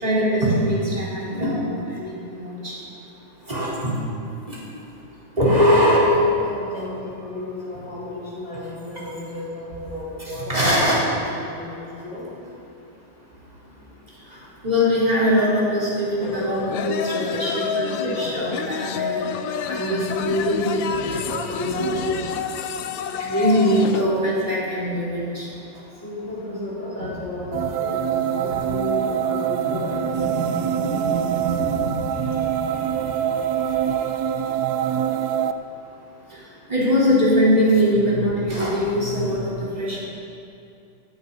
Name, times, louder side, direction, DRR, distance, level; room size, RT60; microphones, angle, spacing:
voice 1, 0.0-2.7 3.5-3.9 4.5-4.6 5.4-6.0 10.5-11.0 14.6-19.3 19.7-22.2 23.2-25.5 28.9-29.0 29.6-29.7 30.2-31.7 32.7-32.8 36.7-40.0, equal, 20° right, -7 dB, 4.2 m, -22 dB
voice 2, 5.6-12.3 14.3-14.5 22.3-22.5 25.9-30.3 31.3-31.5 31.8-34.0 34.9-35.0, left 1 dB, 30° left, -8 dB, 4.4 m, -34 dB
sound 1, 16.2-24.1, left 7 dB, 75° left, 1.4 m, -29 dB
sound 2, 27.5-35.5, right 9 dB, 80° right, 0.9 m, -24 dB
17.5 x 13.5 x 4.1 m, 2.7 s
omnidirectional pair, 2.3 m